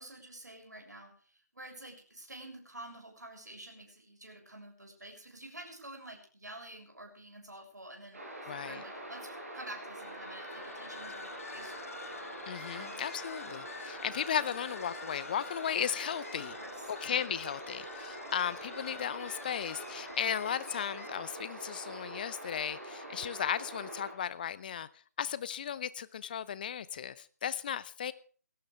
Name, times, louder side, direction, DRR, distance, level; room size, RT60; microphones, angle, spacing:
voice 1, 0.0-8.2 8.6-12.1 12.7-13.0 16.6-16.9, right 1 dB, 75° right, 2 dB, 7.1 m, -49 dB
sound 1, 8.1-24.1, right 1 dB, 50° right, 7.4 m, -45 dB
voice 2, 8.4-8.8 12.5-16.6 16.9-24.9 25.2-28.1, left 9 dB, 30° left, 17 dB, 0.8 m, -35 dB
sound 2, 10.0-21.4, left 5 dB, 50° left, 1.3 m, -48 dB
19.5 x 17.0 x 3.5 m, 0.41 s
figure-of-eight pair, 150°, 10 cm